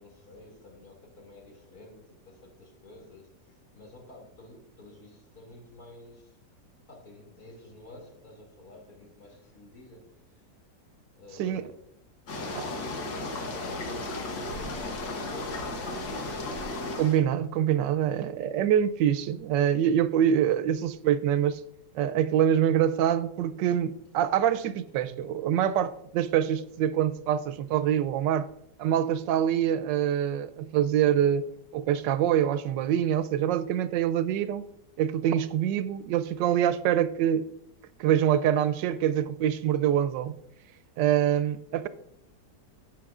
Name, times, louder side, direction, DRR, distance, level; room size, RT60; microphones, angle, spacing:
voice 1, 0.0-6.4 6.9-10.4 11.1-11.8 12.5-16.2, left 2 dB, 55° left, 2.9 m, -50 dB
sound 1, 12.3-17.2, left 2 dB, 90° left, 1.9 m, -34 dB
voice 2, 17.0-21.6 21.9-28.5 28.8-31.5 31.7-34.7 35.0-37.4 38.0-40.3 41.0-41.9, right 10 dB, 90° right, 1.3 m, -25 dB
12.0 x 8.3 x 2.4 m
omnidirectional pair, 1.9 m